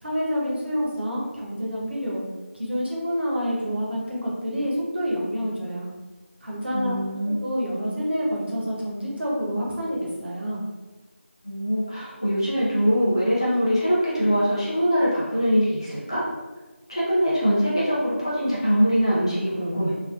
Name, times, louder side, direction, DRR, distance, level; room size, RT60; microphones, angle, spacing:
voice 1, 0.0-2.2 2.5-5.9 6.4-6.9 7.4-10.6, equal, 50° right, -5 dB, 0.8 m, -28 dB
voice 2, 6.7-7.3 11.4-16.3 16.9-19.9, equal, 25° left, -9 dB, 0.6 m, -23 dB
3.2 x 2.2 x 2.3 m, 1.2 s
figure-of-eight pair, 180°, 7 cm